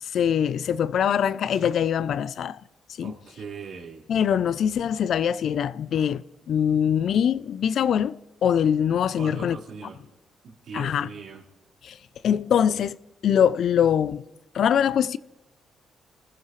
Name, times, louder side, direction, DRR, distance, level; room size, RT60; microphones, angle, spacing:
voice 1, 0.0-2.6 3.0-3.1 4.1-9.6 10.7-11.1 11.8-12.0 12.2-13.0 13.2-14.2 14.5-15.2, left 8 dB, 65° left, 0.5 m, -23 dB
voice 2, 3.0-4.0 9.2-10.0 10.4-11.4, right 5 dB, 65° right, 4.1 m, -39 dB
29.5 x 15.0 x 3.2 m
cardioid pair, 90°, 0 cm